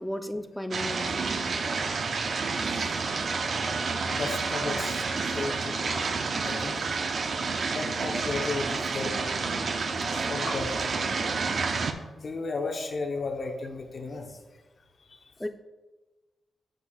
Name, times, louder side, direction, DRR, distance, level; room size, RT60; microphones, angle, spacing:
voice 1, 0.0-1.6 10.0-10.1 15.4-15.5, left 1 dB, 5° left, 8 dB, 0.5 m, -35 dB
sound 1, 0.7-11.9, right 4 dB, 60° right, 0.6 m, -29 dB
voice 2, 4.1-6.0 6.4-6.8 7.7-9.2 10.1-11.0 11.4-11.6 12.2-14.4 15.1-15.2, left 3 dB, 55° left, 3 dB, 1.0 m, -34 dB
7.8 x 7.0 x 2.4 m, 1.2 s
cardioid pair, 70°, 0 cm